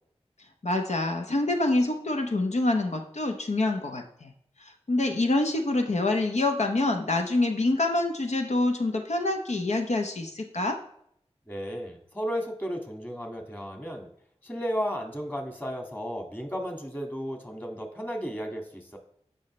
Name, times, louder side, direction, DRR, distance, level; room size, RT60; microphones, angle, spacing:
voice 1, 0.6-4.3 4.9-10.8, left 2 dB, 85° left, 3 dB, 0.9 m, -26 dB
voice 2, 11.5-14.1 14.4-19.0, equal, 15° left, 3 dB, 1.9 m, -34 dB
15.5 x 5.5 x 3.2 m, 0.69 s
wide cardioid pair, 50°, 11 cm